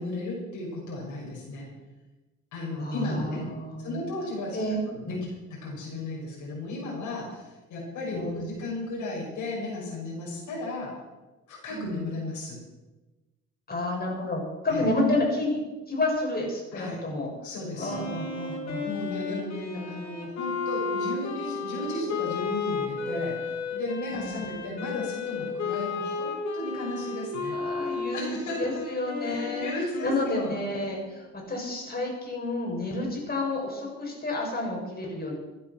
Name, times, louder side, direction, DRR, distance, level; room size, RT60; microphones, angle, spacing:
voice 1, 0.0-1.7 2.5-3.4 3.8-4.6 4.8-5.2 5.5-10.9 11.5-12.6 14.7-14.9 16.7-17.0 17.4-18.0 18.8-27.6 28.1-28.8 29.2-30.6, left 2 dB, 80° left, -4 dB, 6.3 m, -35 dB
voice 2, 2.8-4.0 4.5-4.8 5.0-5.3 8.1-8.5 11.7-11.8 13.7-15.6 15.9-17.3 17.8-18.8 24.1-24.4 27.5-35.3, left 2 dB, 30° left, -1 dB, 7.1 m, -30 dB
Wind instrument woodwind instrument, 17.8-31.2, left 4 dB, 65° left, 3.6 m, -33 dB
16.0 x 11.0 x 6.2 m, 1.1 s
cardioid pair, 90°, 30 cm